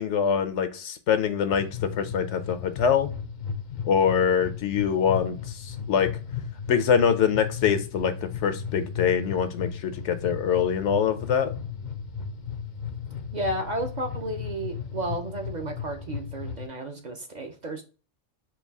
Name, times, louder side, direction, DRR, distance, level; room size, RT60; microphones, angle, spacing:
voice 1, 0.0-3.1 3.9-6.1 6.7-8.1 8.4-11.5, left 7 dB, 80° left, 10 dB, 1.0 m, -24 dB
sound 1, 1.5-16.7, left 7 dB, 55° left, 0.5 m, -35 dB
voice 2, 13.3-17.8, right 1 dB, 45° right, 4 dB, 0.7 m, -32 dB
4.5 x 2.4 x 3.4 m, 0.35 s
omnidirectional pair, 1.2 m